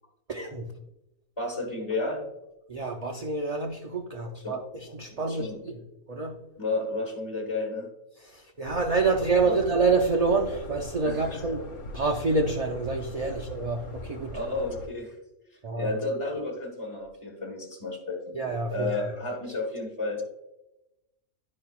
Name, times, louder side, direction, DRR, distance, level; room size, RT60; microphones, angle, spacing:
voice 1, 0.3-0.7 2.7-5.8 6.1-6.4 8.2-11.7 11.9-14.4 15.6-15.9 18.3-18.9, right 3 dB, 60° right, 1 dB, 0.4 m, -27 dB
voice 2, 1.4-2.2 4.3-4.6 5.1-5.6 6.6-7.9 9.4-9.6 11.0-11.4 13.2-13.4 14.3-15.1 15.7-18.4 18.7-20.3, left 2 dB, 25° left, -4 dB, 1.2 m, -32 dB
sound 1, 8.6-14.9, left 1 dB, 65° left, 1.4 m, -41 dB
10.5 x 5.4 x 2.3 m, 0.93 s
omnidirectional pair, 1.4 m